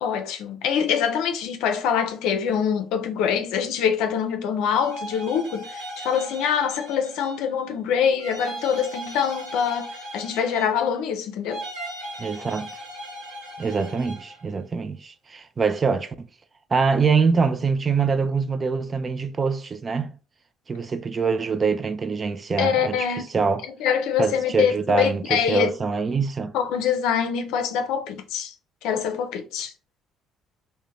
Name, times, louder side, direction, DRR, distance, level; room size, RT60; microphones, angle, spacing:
voice 1, 0.0-11.6 22.6-23.2 23.8-25.7 26.5-28.5 28.8-29.7, left 7 dB, 80° left, 0.4 m, -24 dB
sound 1, 4.7-7.5 8.2-11.0 11.5-14.4, right 1 dB, 85° right, 1.0 m, -38 dB
voice 2, 12.2-12.7 13.6-16.3 16.7-20.1 20.7-23.6 24.2-26.5, right 5 dB, 35° right, 0.4 m, -24 dB
2.5 x 2.1 x 3.1 m
supercardioid pair, 65°, 0 cm